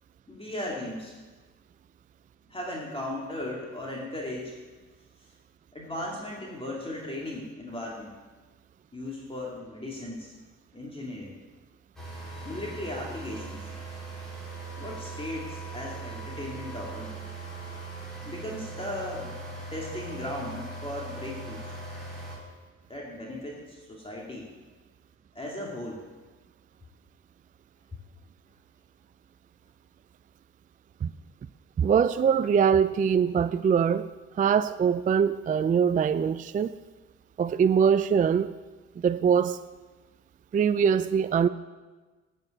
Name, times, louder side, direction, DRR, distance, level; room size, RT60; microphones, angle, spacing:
voice 1, 0.3-1.1 2.5-4.5 5.7-8.1 8.9-10.3 10.7-11.4 12.4-13.7 14.8-17.1 18.2-19.3 19.7-21.7 22.9-24.5 25.3-26.0, left 1 dB, 20° left, 2.4 m, -37 dB
sound 1, 12.0-22.4, right 3 dB, ahead, 4.7 m, -40 dB
voice 2, 31.8-34.1 34.4-36.7 37.4-38.5 39.0-39.6 40.5-41.5, right 7 dB, 30° right, 0.3 m, -23 dB
9.1 x 7.9 x 8.6 m
cardioid pair, 90°, 30 cm